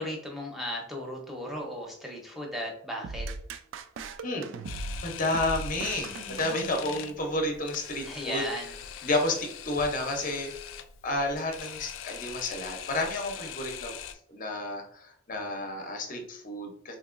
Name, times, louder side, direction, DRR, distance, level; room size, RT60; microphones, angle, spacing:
voice 1, 0.0-3.3 8.0-8.8, equal, ahead, -1 dB, 0.7 m, -36 dB
sound 1, 3.0-7.2, right 3 dB, 65° right, 0.3 m, -39 dB
Camera, 4.6-14.1, left 9 dB, 75° left, 0.3 m, -42 dB
voice 2, 5.0-8.4 9.0-10.5 11.0-13.9 14.3-16.9, left 2 dB, 40° left, 3 dB, 0.7 m, -31 dB
3.7 x 2.8 x 2.4 m, 0.65 s
head